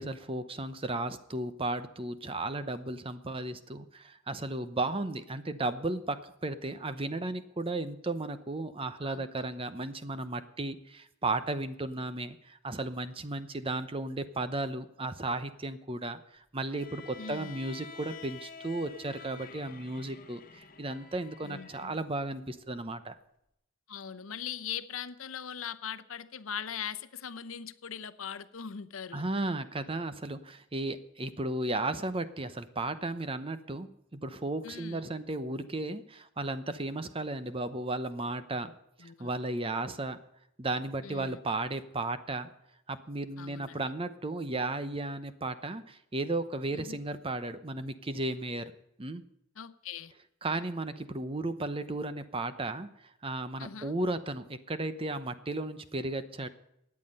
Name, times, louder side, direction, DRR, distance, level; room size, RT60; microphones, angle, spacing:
voice 1, 0.0-23.2 29.1-38.7 39.0-40.2 40.6-42.5 42.9-48.7 49.0-49.2 50.4-52.9 53.2-56.5, right 2 dB, 25° right, 11 dB, 0.8 m, -34 dB
Bowed string instrument, 16.7-21.9, left 5 dB, 45° left, 1.2 m, -49 dB
voice 2, 17.2-17.5 21.4-21.9 23.9-29.2 34.6-35.0 39.0-39.3 41.0-41.4 43.4-43.9 46.7-47.0 49.6-50.1 53.6-53.9, left 7 dB, 85° left, 14 dB, 0.8 m, -40 dB
16.5 x 9.8 x 5.5 m, 0.79 s
head